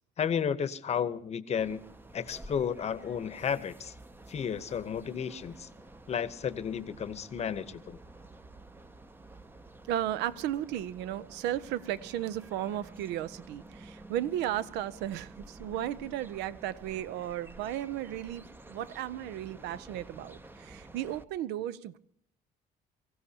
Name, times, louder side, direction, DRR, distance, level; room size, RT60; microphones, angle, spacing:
voice 1, 0.2-1.8 2.1-3.9 4.3-5.7 6.1-8.0, left 7 dB, 40° left, 0.8 m, -32 dB
sound 1, 1.6-21.2, right 2 dB, 10° right, 0.6 m, -51 dB
voice 2, 9.9-22.0, right 12 dB, 90° right, 0.6 m, -35 dB
24.0 x 15.5 x 2.8 m
cardioid pair, 110°, 17 cm